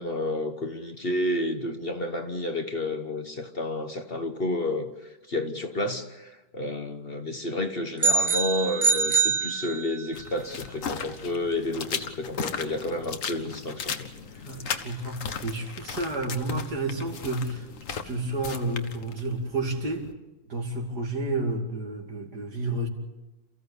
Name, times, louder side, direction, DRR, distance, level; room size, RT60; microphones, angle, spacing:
voice 1, 0.0-4.9 5.3-14.1, left 1 dB, 40° left, 7 dB, 1.3 m, -30 dB
sound 1, 8.0-10.2, right 4 dB, 30° right, 0.5 m, -24 dB
sound 2, 10.1-20.1, left 6 dB, 55° left, 1.4 m, -37 dB
voice 2, 14.4-20.0 20.5-22.9, right 2 dB, 80° right, 2 dB, 3.2 m, -31 dB
28.5 x 15.0 x 8.2 m, 1.1 s
omnidirectional pair, 1.7 m